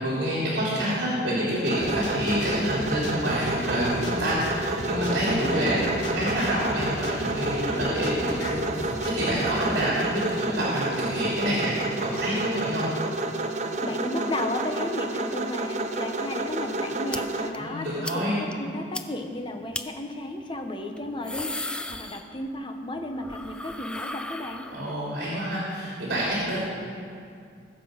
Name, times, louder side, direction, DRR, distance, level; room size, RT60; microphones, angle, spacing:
voice 1, 0.0-12.8 17.6-18.4 24.7-26.6, equal, 65° right, -6 dB, 3.0 m, -27 dB
sound 1, 1.6-17.5, right 2 dB, 40° right, 0.7 m, -30 dB
sound 2, 1.8-9.8, left 1 dB, 70° left, 1.7 m, -37 dB
voice 2, 13.8-24.7, left 1 dB, 25° left, 4 dB, 1.0 m, -34 dB
sound 3, 17.1-17.2 17.5-17.6 18.0-18.2 18.5-18.6 18.9-19.0 19.7-19.8 21.0-22.6 22.9-25.1, left 2 dB, 5° left, 0.4 m, -35 dB
20.5 x 6.8 x 5.2 m, 2.3 s
head